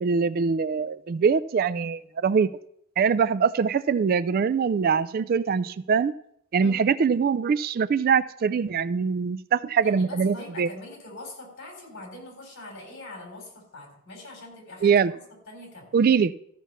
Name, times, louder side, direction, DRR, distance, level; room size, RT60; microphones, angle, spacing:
voice 1, 0.0-2.5 3.0-6.1 6.5-10.7 14.8-15.1 15.9-16.3, right 6 dB, 45° right, 16 dB, 0.3 m, -23 dB
voice 2, 9.8-15.2 15.5-15.9, left 2 dB, 55° left, 1 dB, 4.0 m, -43 dB
14.0 x 6.0 x 5.6 m, 0.71 s
head